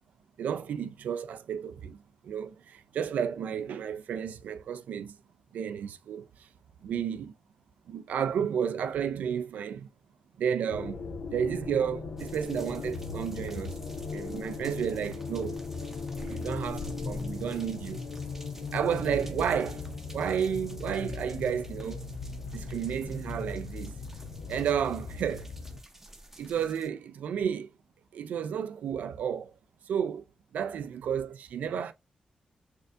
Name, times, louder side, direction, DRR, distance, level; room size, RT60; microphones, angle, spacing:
voice 1, 0.4-2.0 2.2-5.2 5.5-6.5 6.8-7.3 7.9-9.9 10.4-11.0 11.3-13.8 14.1-15.6 16.2-18.0 18.7-19.9 20.1-22.1 22.5-24.0 24.5-25.5 26.4-27.7 28.1-29.5 29.9-30.2 30.5-31.9, right 8 dB, 85° right, 0.3 m, -32 dB
sound 1, 10.7-25.8, left 4 dB, 85° left, 0.5 m, -38 dB
sound 2, 12.2-26.9, right 1 dB, 10° right, 0.6 m, -51 dB
4.3 x 2.6 x 2.4 m
cardioid pair, 95°, 3 cm